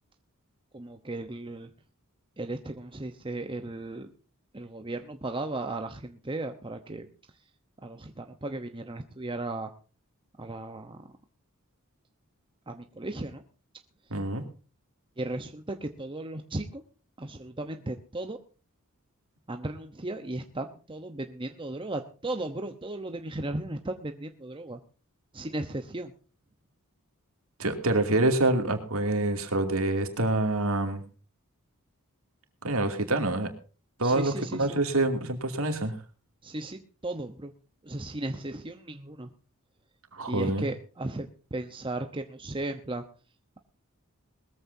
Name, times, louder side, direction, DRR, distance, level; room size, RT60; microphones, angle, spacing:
voice 1, 0.7-1.7 2.4-4.1 4.5-7.1 7.8-9.7 10.4-11.0 12.7-13.4 15.2-16.8 17.2-18.4 19.5-24.8 25.3-26.1 34.0-34.8 36.4-37.5 37.8-39.3 40.3-43.0, right 2 dB, 25° right, 6 dB, 0.9 m, -36 dB
voice 2, 14.1-14.4 27.6-31.0 32.6-33.5 34.0-36.0 40.1-40.7, right 2 dB, 65° right, 5 dB, 2.7 m, -26 dB
20.5 x 14.5 x 2.7 m, 0.36 s
head